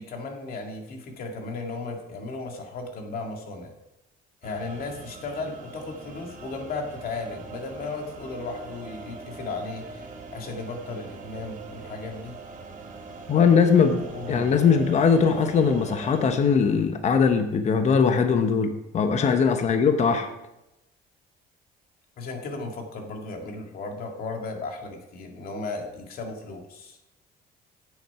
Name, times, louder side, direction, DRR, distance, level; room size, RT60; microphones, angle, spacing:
voice 1, 0.0-3.7 4.4-12.4 13.3-13.6 14.1-14.6 19.2-19.4 22.2-27.0, left 3 dB, 60° left, 2 dB, 2.1 m, -35 dB
sound 1, 4.4-16.3, right 4 dB, 45° right, 1.6 m, -41 dB
voice 2, 13.3-14.0 14.3-20.3, left 6 dB, 40° left, 7 dB, 0.9 m, -20 dB
9.2 x 7.4 x 4.7 m, 0.89 s
cardioid pair, 110°, 17 cm